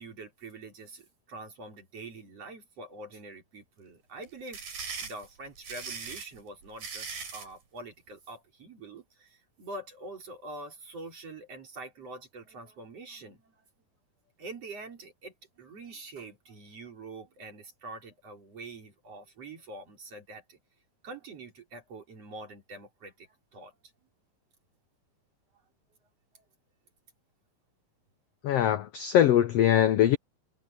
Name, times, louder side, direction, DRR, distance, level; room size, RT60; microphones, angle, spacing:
voice 1, 0.0-4.6 5.0-13.6 14.4-20.6 21.0-23.7 26.3-26.4, right 2 dB, 45° right, 5.7 m, -45 dB
sound 1, 4.2-7.5, right 5 dB, 75° right, 5.9 m, -39 dB
voice 2, 28.4-30.2, left 11 dB, 70° left, 1.5 m, -22 dB
omnidirectional pair, 3.8 m